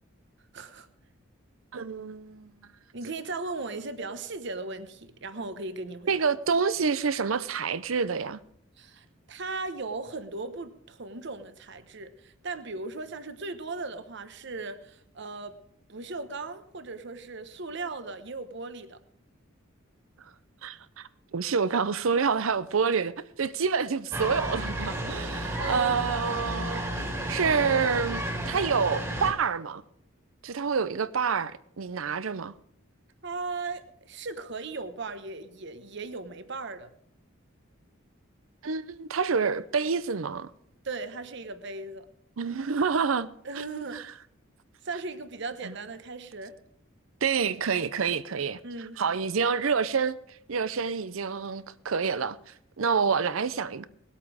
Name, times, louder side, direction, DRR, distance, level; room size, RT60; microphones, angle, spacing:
voice 1, 0.5-0.9 2.9-6.1 8.8-15.6 15.9-19.0 25.6-26.0 26.7-27.1 33.2-36.9 40.8-42.1 43.4-44.1 44.8-46.5 48.6-49.2, right 3 dB, 60° right, 1.0 m, -37 dB
voice 2, 1.7-2.5 6.1-8.4 20.6-23.1 23.4-26.8 27.3-29.8 30.4-32.5 38.6-40.5 42.4-43.3 43.6-43.7 43.9-44.0 45.6-45.7 47.2-48.6 49.0-50.2 50.5-52.4 52.8-53.9, right 5 dB, 80° right, 0.6 m, -27 dB
sound 1, 24.1-29.3, right 1 dB, 15° right, 2.0 m, -32 dB
19.5 x 8.4 x 4.9 m
head